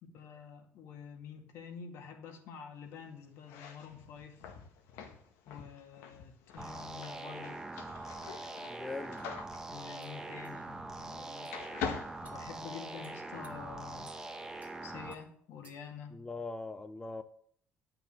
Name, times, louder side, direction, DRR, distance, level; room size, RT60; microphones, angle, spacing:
voice 1, 0.0-4.4 5.5-7.6 9.7-11.5 12.2-14.1 14.8-16.2, left 7 dB, 75° left, 2.2 m, -48 dB
sound 1, 3.4-11.2 11.5-13.1, left 7 dB, 90° left, 1.7 m, -44 dB
sound 2, 6.6-15.1, right 2 dB, 15° right, 1.4 m, -43 dB
sound 3, 8.6-8.7 9.2-9.3 10.0-10.1 10.4-10.6 11.4-11.6 12.2-12.4 13.0-13.5 14.0-14.2 14.6-14.7 15.1-15.2 15.6-15.9, right 4 dB, 30° right, 2.5 m, -60 dB
voice 2, 8.7-9.2 16.1-17.2, left 3 dB, 15° left, 0.7 m, -41 dB
10.0 x 6.0 x 8.7 m
cardioid pair, 105°, 4 cm